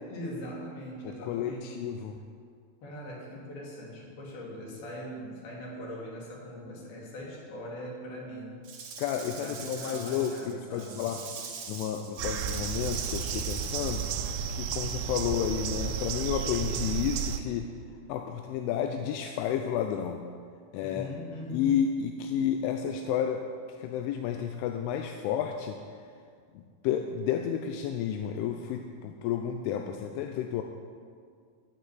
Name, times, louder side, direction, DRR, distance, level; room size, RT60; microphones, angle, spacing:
voice 1, 0.1-1.7 2.8-8.6 9.3-11.1 20.8-21.9, equal, 50° left, -3 dB, 4.3 m, -41 dB
voice 2, 1.0-2.2 9.0-11.2 11.7-14.1 14.5-17.7 18.1-20.2 20.7-21.1 21.5-23.4 23.8-25.8 26.5-30.6, left 9 dB, 80° left, 4 dB, 2.9 m, -31 dB
Rattle / Rattle (instrument), 8.6-14.2, right 5 dB, 65° right, 2.0 m, -42 dB
sound 1, 12.2-17.4, right 7 dB, 90° right, 3.4 m, -32 dB
15.0 x 6.7 x 9.6 m, 2.2 s
omnidirectional pair, 5.9 m